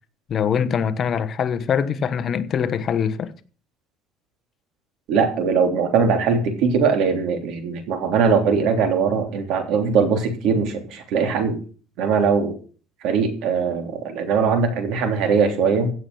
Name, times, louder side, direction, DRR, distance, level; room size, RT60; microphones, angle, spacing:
voice 1, 0.3-3.3, left 7 dB, 35° left, 1.1 m, -23 dB
voice 2, 5.1-11.6 12.0-12.5 13.0-15.9, right 5 dB, 65° right, 3.3 m, -21 dB
16.0 x 7.1 x 6.2 m
cardioid pair, 150°, 0 cm